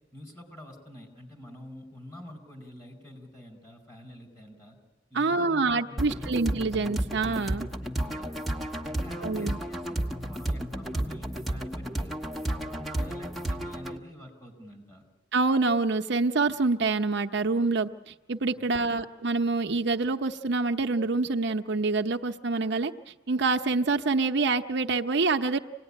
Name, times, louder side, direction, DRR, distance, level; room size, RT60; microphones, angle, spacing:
voice 1, 0.1-4.8 5.1-6.4 7.7-8.3 8.9-9.9 10.1-12.1 12.5-15.0 18.6-19.0, left 1 dB, 15° left, 3 dB, 5.0 m, -47 dB
voice 2, 5.1-7.7 9.2-9.6 15.3-22.9 23.3-25.6, right 3 dB, 65° right, 5 dB, 0.8 m, -26 dB
sound 1, 6.0-14.0, right 1 dB, ahead, 1.2 m, -32 dB
26.5 x 18.5 x 9.9 m, 1.1 s
head